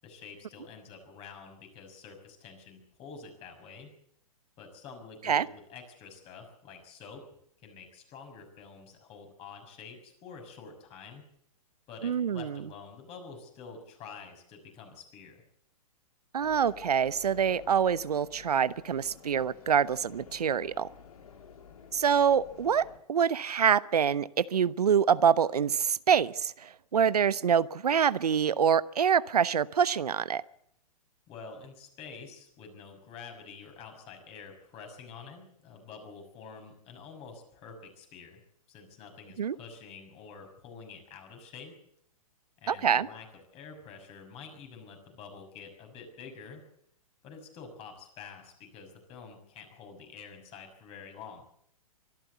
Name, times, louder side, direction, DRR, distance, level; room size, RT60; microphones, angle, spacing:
voice 1, 0.0-3.9 4.6-7.2 7.6-11.2 11.9-15.4 31.3-38.4 38.7-41.8 42.6-43.3 43.5-46.6 47.2-51.4, left 5 dB, 30° left, 5 dB, 6.1 m, -48 dB
voice 2, 12.0-12.6 16.3-20.9 21.9-30.4 39.4-39.6 42.7-43.1, right 7 dB, 80° right, 17 dB, 0.8 m, -26 dB
sound 1, 16.4-23.0, left 7 dB, 70° left, 3.6 m, -52 dB
24.0 x 13.5 x 8.2 m, 0.69 s
hypercardioid pair, 125°, 20 cm